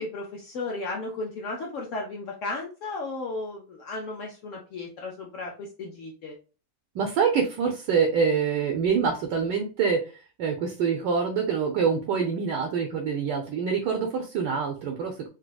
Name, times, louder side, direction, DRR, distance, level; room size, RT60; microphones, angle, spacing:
voice 1, 0.0-6.4, left 3 dB, 90° left, 0 dB, 0.6 m, -34 dB
voice 2, 6.9-15.3, right 6 dB, 75° right, 3 dB, 1.2 m, -26 dB
4.0 x 2.4 x 2.2 m, 0.34 s
omnidirectional pair, 2.0 m